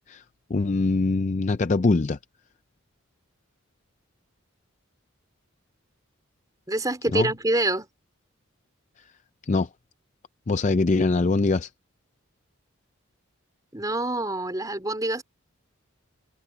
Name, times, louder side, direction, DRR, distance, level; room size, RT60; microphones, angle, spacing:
voice 1, 0.5-2.2 7.1-7.3 9.0-9.1 9.4-9.7 10.5-11.7, left 3 dB, 35° left, 0.4 m, -23 dB
voice 2, 6.7-7.9 13.7-15.2, right 1 dB, 15° right, 3.6 m, -26 dB
head